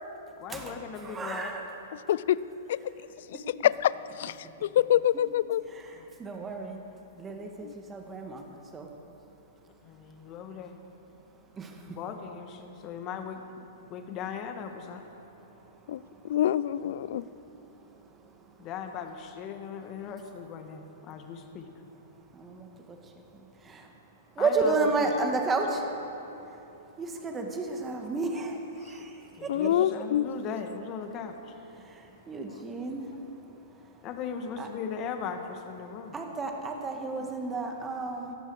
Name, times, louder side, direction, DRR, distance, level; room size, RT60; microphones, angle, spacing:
voice 1, 0.4-1.5 6.0-6.1 9.8-10.8 11.8-13.4 13.9-15.0 18.6-21.7 24.4-25.1 29.0-31.5 34.0-36.1, left 6 dB, 35° left, 6 dB, 1.6 m, -38 dB
voice 2, 1.0-1.6 3.3-3.4 6.2-6.8 7.2-8.4 8.7-8.9 11.6-11.8 22.3-23.0 23.3-23.9 24.4-25.9 27.0-29.1 29.4-29.7 31.8-33.1 34.6-34.7 36.1-38.4, right 3 dB, 20° right, 3 dB, 1.8 m, -32 dB
voice 3, 1.9-2.4 2.7-2.8 3.3-4.4 4.6-5.6 7.6-7.7 15.9-16.0 16.2-17.2 29.5-30.3, left 11 dB, 60° left, 18 dB, 0.4 m, -26 dB
17.5 x 14.0 x 4.9 m, 3.0 s
hypercardioid pair, 110°, 0 cm